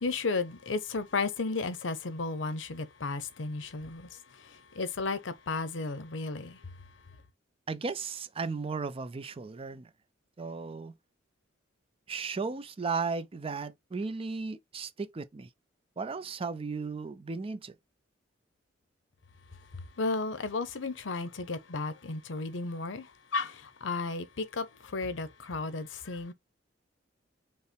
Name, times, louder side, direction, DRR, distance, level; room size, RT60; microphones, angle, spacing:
voice 1, 0.0-4.1 4.7-6.6 20.0-23.1 23.3-26.3, left 3 dB, 85° left, 0.8 m, -33 dB
voice 2, 7.7-9.9 10.4-10.9 12.1-15.5 16.0-17.7, right 4 dB, 30° right, 0.4 m, -35 dB
5.4 x 2.1 x 4.5 m
head